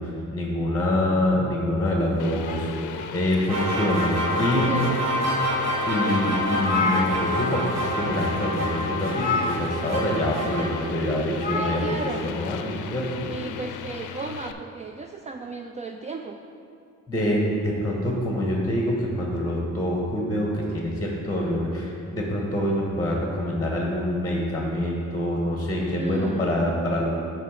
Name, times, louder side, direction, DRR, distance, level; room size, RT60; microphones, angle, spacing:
voice 1, 0.0-4.8 5.9-13.3 17.1-27.1, left 1 dB, 10° left, -1 dB, 1.2 m, -26 dB
sound 1, 2.2-14.5, left 8 dB, 80° left, 0.5 m, -37 dB
sound 2, 2.4-3.6 4.1-5.0 5.6-5.7 6.1-6.2 6.3-7.7 8.0-8.2 9.1-10.1 11.3-12.2, left 4 dB, 30° left, 0.9 m, -30 dB
sound 3, 3.5-10.7, equal, 65° right, 1.3 m, -27 dB
voice 2, 4.7-5.0 11.5-12.3 13.3-16.4 25.9-26.6, right 4 dB, 25° right, 4 dB, 0.3 m, -35 dB
9.2 x 3.3 x 6.5 m, 2.6 s
cardioid pair, 90°, 30 cm